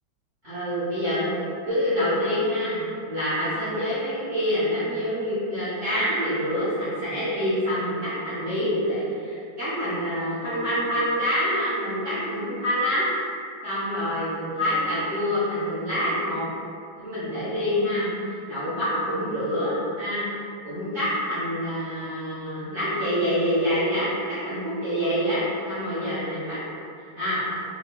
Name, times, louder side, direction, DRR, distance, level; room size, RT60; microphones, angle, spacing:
voice 1, 0.4-1.3 1.7-13.0 13.6-16.4 17.0-18.1 18.5-20.2 20.6-26.6 27.2-27.4, equal, 55° right, -13 dB, 0.9 m, -26 dB
3.6 x 2.3 x 2.2 m, 2.4 s
omnidirectional pair, 2.3 m